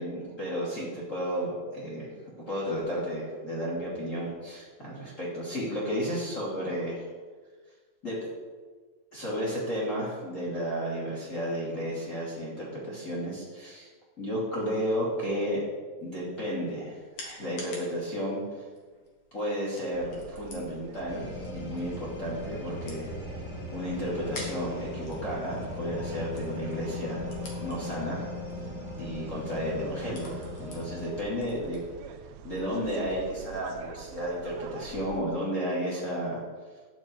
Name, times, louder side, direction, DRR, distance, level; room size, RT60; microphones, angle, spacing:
voice 1, 0.0-2.1 2.5-7.0 8.0-8.3 9.1-13.9 14.2-15.6 16.0-17.0 17.2-18.4 19.3-23.1 23.7-27.2 27.6-28.2 29.0-31.8 32.4-36.4, equal, 25° left, -6 dB, 2.1 m, -32 dB
sound 1, 16.3-32.7, left 2 dB, 45° left, 2.0 m, -50 dB
sound 2, 19.9-35.2, right 8 dB, 90° right, 2.2 m, -46 dB
sound 3, 21.1-31.2, left 2 dB, 65° left, 1.2 m, -39 dB
12.0 x 8.5 x 4.6 m, 1.4 s
omnidirectional pair, 5.3 m